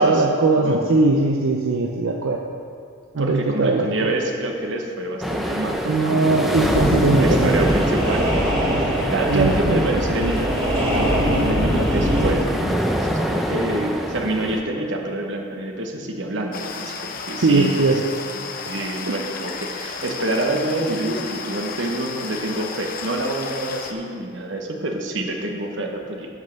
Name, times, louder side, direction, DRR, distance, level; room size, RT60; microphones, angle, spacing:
voice 1, 0.0-2.4 3.1-4.1 5.8-7.7 9.3-9.8 17.4-18.0, right 3 dB, 80° right, 2 dB, 0.6 m, -20 dB
voice 2, 3.2-6.4 7.2-17.8 18.3-26.3, right 1 dB, 60° right, 2 dB, 1.1 m, -27 dB
sound 1, 5.2-14.6, equal, ahead, 0.6 m, -25 dB
sound 2, 7.1-12.3, equal, 25° right, 2.3 m, -23 dB
sound 3, 16.5-23.9, left 5 dB, 45° left, 0.7 m, -33 dB
11.0 x 5.5 x 6.5 m, 2.3 s
head